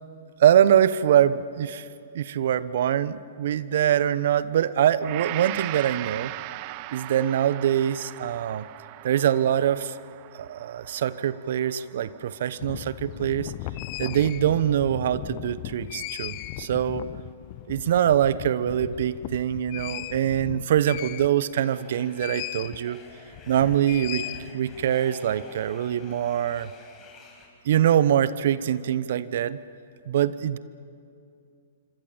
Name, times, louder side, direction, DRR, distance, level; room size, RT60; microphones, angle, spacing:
voice 1, 0.4-1.8 2.1-6.3 6.9-8.7 9.0-10.0 10.3-13.5 14.0-17.1 17.7-23.0 23.5-24.3 24.5-26.7 27.6-29.6 30.1-30.6, right 10 dB, 60° right, 16 dB, 0.9 m, -23 dB
Gong, 5.0-13.3 13.8-13.9, right 20 dB, 40° right, 0.6 m, -39 dB
sound 1, 12.6-21.6 22.2-22.8 23.1-24.9, left 17 dB, 40° left, 0.7 m, -37 dB
sound 2, 21.6-27.5, left 4 dB, 20° left, 5.7 m, -50 dB
26.5 x 25.5 x 7.2 m, 2.5 s
hypercardioid pair, 120°, 0 cm